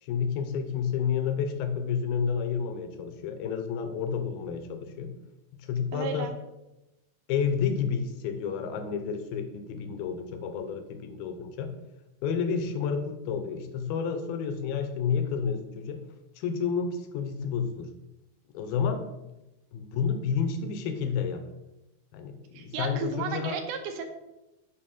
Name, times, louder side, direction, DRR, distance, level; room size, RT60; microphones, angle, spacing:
voice 1, 0.0-5.1 5.5-6.3 7.3-11.7 12.2-16.0 16.4-17.9 18.5-19.1 19.7-21.4 22.1-23.6, left 6 dB, 80° left, 8 dB, 2.4 m, -30 dB
voice 2, 5.9-6.3 22.5-24.0, right 5 dB, 85° right, 6 dB, 2.7 m, -34 dB
8.8 x 4.6 x 5.2 m, 0.96 s
omnidirectional pair, 4.4 m